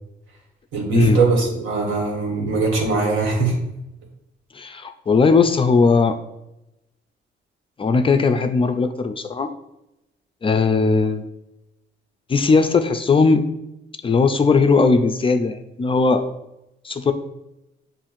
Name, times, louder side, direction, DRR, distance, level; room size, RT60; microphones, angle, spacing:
voice 1, 0.7-3.5, right 4 dB, 80° right, -1 dB, 1.5 m, -21 dB
voice 2, 4.6-6.2 7.8-9.5 10.4-11.3 12.3-13.5 14.0-16.2 16.8-17.1, left 4 dB, 25° left, 7 dB, 0.3 m, -18 dB
7.1 x 2.5 x 2.5 m, 0.90 s
cardioid pair, 90°, 20 cm